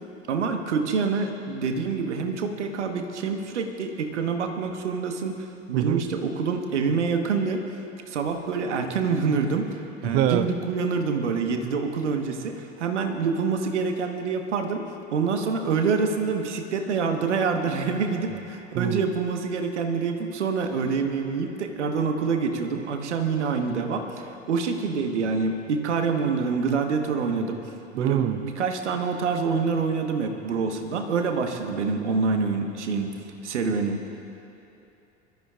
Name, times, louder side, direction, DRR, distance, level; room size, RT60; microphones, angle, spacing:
voice 1, 0.3-7.6 8.1-27.6 27.9-33.1 33.4-34.0, right 5 dB, 70° right, 5 dB, 1.4 m, -26 dB
voice 2, 5.7-6.0 10.0-10.5 18.7-19.0 28.0-28.4, right 12 dB, 25° right, 11 dB, 0.4 m, -24 dB
24.5 x 13.0 x 2.4 m, 2.8 s
figure-of-eight pair, 75°, 37 cm